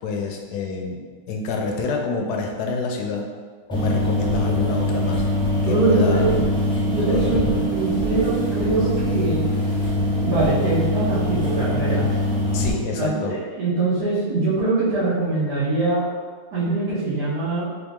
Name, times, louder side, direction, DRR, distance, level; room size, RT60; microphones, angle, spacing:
voice 1, 0.0-1.0 1.3-3.3 3.7-5.2 5.6-6.3 7.1-7.9 12.5-13.4, left 4 dB, 75° left, 2 dB, 1.1 m, -27 dB
sound 1, 3.7-12.7, left 1 dB, 5° left, 0.4 m, -23 dB
voice 2, 5.6-6.3 6.8-9.5 10.2-12.1 12.9-16.1 16.5-17.7, right 3 dB, 70° right, -13 dB, 1.8 m, -23 dB
3.8 x 3.0 x 3.5 m, 1.5 s
omnidirectional pair, 1.7 m